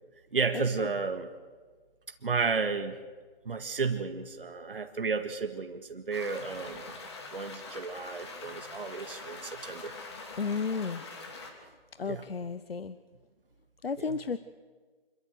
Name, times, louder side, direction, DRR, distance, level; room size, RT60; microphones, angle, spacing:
voice 1, 0.3-1.3 2.2-3.0 3.5-6.9 7.3-10.0 12.1-12.2 14.0-14.2, right 4 dB, 65° right, 7 dB, 1.8 m, -32 dB
sound 1, 6.1-11.5, left 3 dB, 25° left, 2.9 m, -44 dB
voice 2, 10.4-11.0 12.0-13.0 13.8-14.4, left 5 dB, 80° left, 14 dB, 1.0 m, -33 dB
26.0 x 14.0 x 7.8 m, 1.4 s
figure-of-eight pair, 170°, 30 cm